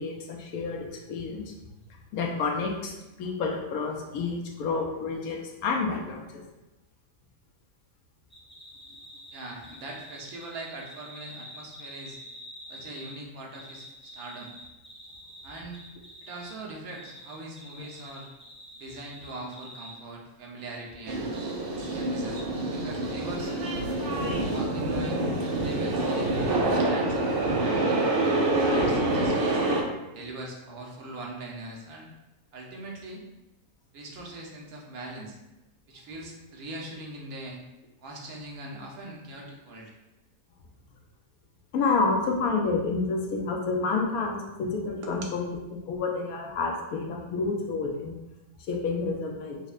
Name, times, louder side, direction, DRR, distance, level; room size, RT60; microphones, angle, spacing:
voice 1, 0.0-1.4 2.1-6.3 41.7-45.6 45.9-48.2 48.7-49.6, left 4 dB, 85° left, 0 dB, 1.1 m, -29 dB
sound 1, 8.3-13.2 13.5-16.6 16.9-19.9, equal, 10° left, 0.6 m, -47 dB
voice 2, 9.3-12.2 12.7-14.5 15.4-15.8 16.2-18.3 18.7-21.3 21.7-22.4 22.7-23.5 24.5-28.0 28.7-29.6 30.1-32.1 32.5-33.2 33.9-35.4 35.9-37.6 38.0-39.9 45.0-45.3, right 2 dB, 80° right, -1 dB, 1.2 m, -41 dB
sound 2, 21.1-29.8, right 2 dB, 60° right, 0.5 m, -26 dB
5.3 x 2.1 x 2.4 m, 0.97 s
omnidirectional pair, 1.5 m